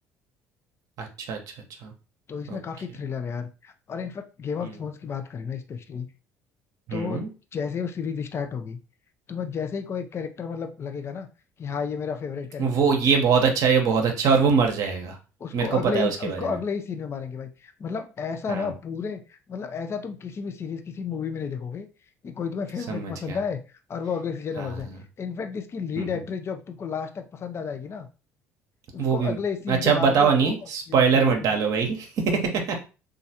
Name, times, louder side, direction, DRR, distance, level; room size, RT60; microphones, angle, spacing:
voice 1, 1.0-1.4 1.8-1.9 2.5-2.6 4.6-4.8 6.9-7.3 12.6-15.2 15.5-16.6 18.5-18.7 22.9-23.4 24.6-25.0 26.0-26.1 29.0-29.4 29.7-32.8, right 6 dB, 55° right, 3 dB, 0.7 m, -23 dB
voice 2, 2.3-6.1 6.9-7.2 7.5-8.8 9.3-11.3 11.6-12.8 15.4-21.9 22.2-23.6 23.9-24.9 25.2-28.1 28.9-30.5 30.9-31.3, left 6 dB, 35° left, 8 dB, 0.5 m, -32 dB
3.1 x 2.4 x 2.7 m, 0.33 s
hypercardioid pair, 60°, 7 cm